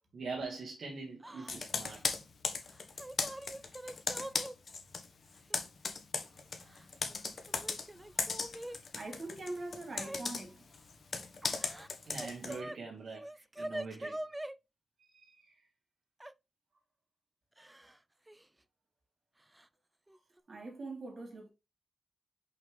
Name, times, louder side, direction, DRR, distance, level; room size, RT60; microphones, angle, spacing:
voice 1, 0.1-2.1 12.1-14.2 15.1-15.5, right 4 dB, 70° right, 2.0 m, -43 dB
Yell / Crying sobbing, 1.2-1.5 1.8-2.0 2.7-4.5 5.5-5.6 6.6-7.2 7.5-8.8 9.9-10.2 11.4-12.8 13.1-14.5 16.2-16.3 17.6-18.0 18.3-18.4 19.5-19.7 20.1-20.4, right 1 dB, 15° right, 0.6 m, -44 dB
Computer keyboard, 1.5-5.1 5.3-12.6, left 4 dB, 60° left, 1.4 m, -37 dB
voice 2, 6.2-7.3 7.6-8.3 8.6-10.6 20.5-21.5, right 2 dB, 55° right, 3.6 m, -45 dB
5.7 x 5.4 x 3.4 m
cardioid pair, 55°, 0 cm